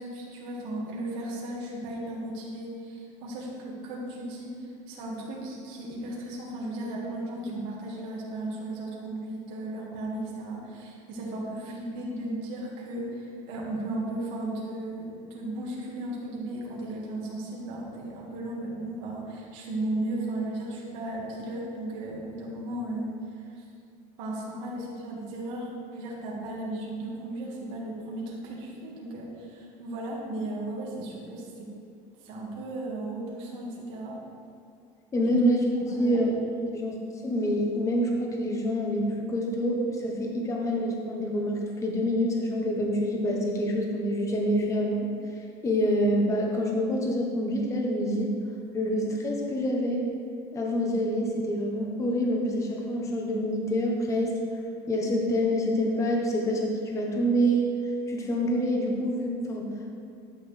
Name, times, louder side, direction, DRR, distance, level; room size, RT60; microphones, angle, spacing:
voice 1, 0.0-23.6 24.2-31.7 32.2-34.2 35.2-35.3 35.7-36.2 36.5-36.7, right 1 dB, 85° right, -4 dB, 2.0 m, -35 dB
voice 2, 35.1-35.6 36.0-36.3 36.7-37.0 37.2-45.1 45.6-48.3 48.7-50.1 50.5-54.3 54.9-57.7 58.1-59.6, equal, 20° left, 0 dB, 1.2 m, -26 dB
12.0 x 7.0 x 3.4 m, 2.5 s
cardioid pair, 170°, 16 cm